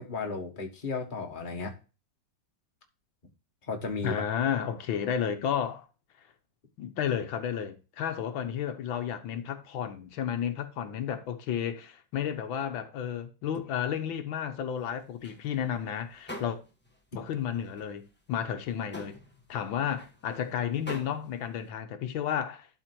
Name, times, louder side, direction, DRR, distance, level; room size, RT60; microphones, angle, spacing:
voice 1, 0.0-1.7 3.7-4.1, left 4 dB, 25° left, 1.6 m, -34 dB
voice 2, 4.0-5.9 6.8-16.6 17.1-18.0 18.3-19.1 19.5-22.7, left 9 dB, 85° left, 1.7 m, -32 dB
sound 1, 14.8-17.0 17.3-21.7, equal, 5° left, 1.0 m, -46 dB
11.5 x 4.4 x 4.5 m
omnidirectional pair, 2.1 m